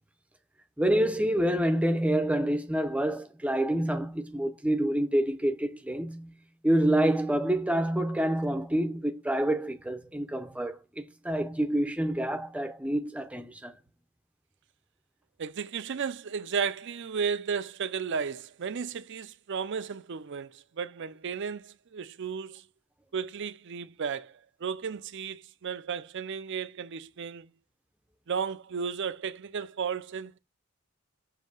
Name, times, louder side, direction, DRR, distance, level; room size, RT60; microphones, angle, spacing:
voice 1, 0.8-6.3 6.6-13.7, right 1 dB, 5° right, 0.6 m, -27 dB
voice 2, 15.4-22.6 23.1-24.3 24.6-27.5 28.3-30.4, right 6 dB, 55° right, 0.5 m, -34 dB
7.3 x 2.8 x 5.3 m
head